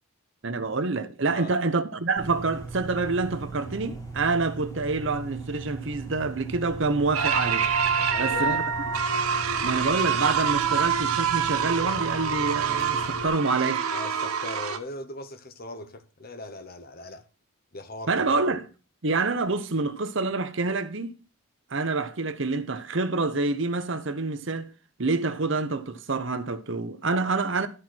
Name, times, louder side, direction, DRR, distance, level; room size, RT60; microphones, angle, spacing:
voice 1, 0.4-7.7 8.2-8.6 9.6-13.9 18.1-18.7 19.0-21.2 21.7-24.7 25.0-27.7, right 3 dB, 55° right, 0.9 m, -27 dB
sound 1, 2.2-13.3, right 3 dB, 15° left, 2.2 m, -39 dB
sound 2, 7.1-14.8, right 6 dB, 90° right, 1.1 m, -26 dB
voice 2, 7.9-8.6 13.9-17.2 17.7-18.5, left 2 dB, 45° left, 1.0 m, -39 dB
12.5 x 4.4 x 6.0 m
head